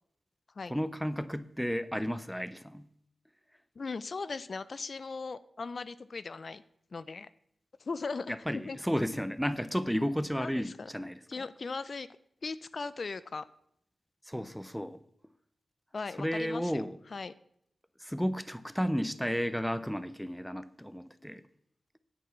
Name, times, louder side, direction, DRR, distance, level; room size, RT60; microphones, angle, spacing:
voice 1, 0.7-2.9 8.3-11.2 14.3-15.0 16.2-17.0 18.0-21.4, equal, ahead, 0.5 m, -33 dB
voice 2, 3.8-6.6 6.9-7.3 7.8-8.4 8.6-8.8 10.4-10.9 11.3-12.1 12.4-13.4 15.9-16.8 17.1-17.3, left 4 dB, 55° left, 0.4 m, -38 dB
9.3 x 8.0 x 5.7 m
wide cardioid pair, 90°, 0 cm